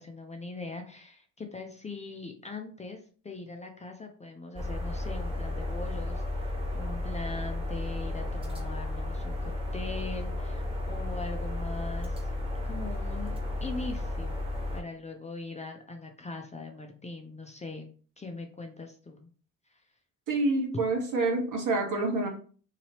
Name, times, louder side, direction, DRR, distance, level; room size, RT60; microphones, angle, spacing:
voice 1, 0.0-12.3 12.6-14.4 14.7-17.9 18.2-19.3 19.7-19.8, left 3 dB, 20° left, 3 dB, 0.6 m, -41 dB
sound 1, 4.6-14.8, left 2 dB, 15° right, 1.4 m, -33 dB
voice 2, 20.3-22.3, right 2 dB, 55° right, 0 dB, 1.3 m, -27 dB
2.9 x 2.7 x 2.9 m, 0.42 s
hypercardioid pair, 50°, 38 cm